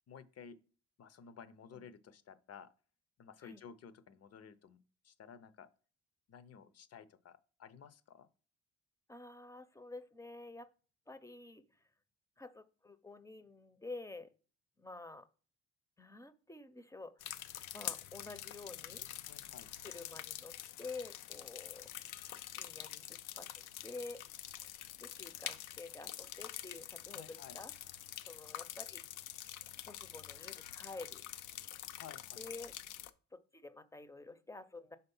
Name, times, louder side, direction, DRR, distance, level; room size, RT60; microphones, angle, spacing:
voice 1, 0.1-0.6 1.0-2.7 3.2-4.8 5.0-5.7 6.3-8.3 19.3-19.7 27.1-27.6 32.0-32.4, left 7 dB, 55° left, 14 dB, 0.7 m, -54 dB
voice 2, 9.1-10.7 11.1-11.6 12.4-14.3 14.8-15.3 16.0-17.5 17.7-19.1 19.8-21.9 22.5-24.2 25.0-27.7 28.3-29.1 29.8-31.2 32.4-32.7 33.3-35.0, left 3 dB, 10° left, 12 dB, 0.7 m, -49 dB
sound 1, 17.2-33.1, left 12 dB, 90° left, 0.5 m, -46 dB
5.7 x 3.8 x 5.4 m, 0.38 s
cardioid pair, 90°, 30 cm